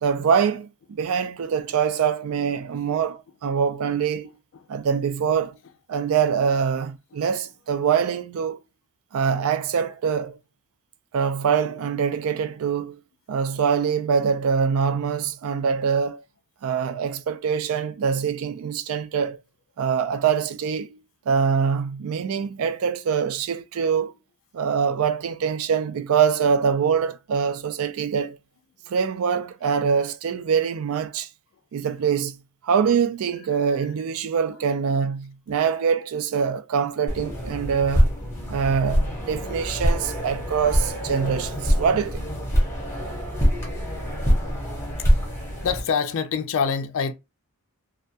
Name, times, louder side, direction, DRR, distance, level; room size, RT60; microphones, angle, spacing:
voice 1, 0.0-4.3 4.7-5.6 5.9-8.6 9.1-10.4 11.1-13.0 13.3-16.2 16.6-19.4 19.8-21.0 21.3-24.2 24.5-28.4 28.9-31.3 31.7-32.4 32.6-38.2 38.5-42.2, right 6 dB, 70° right, 0.3 m, -24 dB
sound 1, 37.1-45.8, equal, 10° left, 0.8 m, -24 dB
voice 2, 45.6-47.1, left 6 dB, 60° left, 0.4 m, -25 dB
2.3 x 2.2 x 2.7 m
head